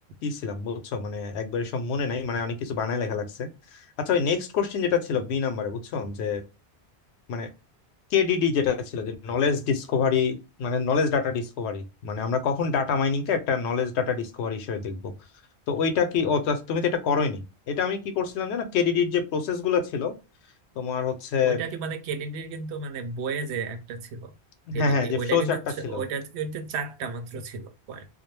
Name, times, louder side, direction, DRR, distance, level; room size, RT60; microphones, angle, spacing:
voice 1, 0.2-6.4 7.3-7.5 8.1-15.1 15.7-20.1 20.8-21.6 24.7-25.6 25.8-26.0, left 6 dB, 85° left, 0.8 m, -26 dB
voice 2, 21.4-24.3 24.7-28.1, right 5 dB, 80° right, 0.8 m, -33 dB
2.3 x 2.1 x 3.0 m
omnidirectional pair, 1.1 m